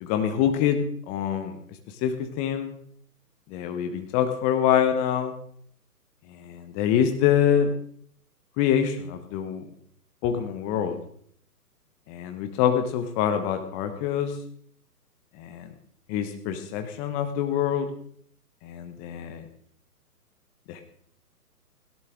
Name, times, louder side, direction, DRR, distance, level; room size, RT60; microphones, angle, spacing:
voice 1, 0.0-1.6 2.0-2.7 3.5-5.3 6.3-7.7 8.6-9.6 10.2-11.0 12.1-14.3 15.4-15.7 16.1-17.9 18.6-19.4 20.7-20.8, left 9 dB, 15° left, 7 dB, 0.9 m, -25 dB
17.5 x 17.0 x 3.6 m, 0.62 s
figure-of-eight pair, 130°, 47 cm